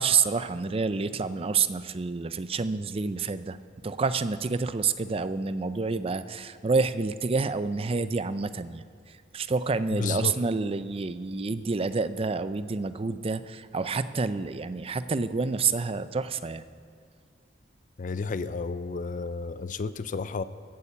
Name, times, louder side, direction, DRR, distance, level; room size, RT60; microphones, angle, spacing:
voice 1, 0.0-3.6 3.8-8.8 9.3-16.6, right 4 dB, 30° right, 13 dB, 0.5 m, -28 dB
voice 2, 9.9-10.3 18.0-20.4, left 4 dB, 45° left, 14 dB, 0.4 m, -31 dB
15.0 x 7.2 x 8.3 m, 2.1 s
head